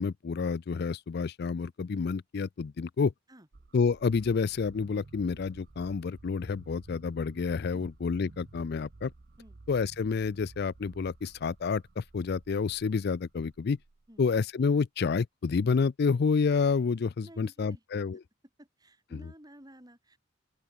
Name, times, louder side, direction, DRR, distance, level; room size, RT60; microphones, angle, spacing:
voice 1, 0.0-3.1 3.7-9.1 9.7-13.8 14.2-18.2 19.1-19.2, left 5 dB, 55° left, 0.4 m, -29 dB
sound 1, 3.5-14.4, right 2 dB, 50° right, 0.7 m, -54 dB
voice 2, 17.2-17.8 18.1-18.2 18.6-20.2, equal, 20° right, 4.6 m, -53 dB
open air
head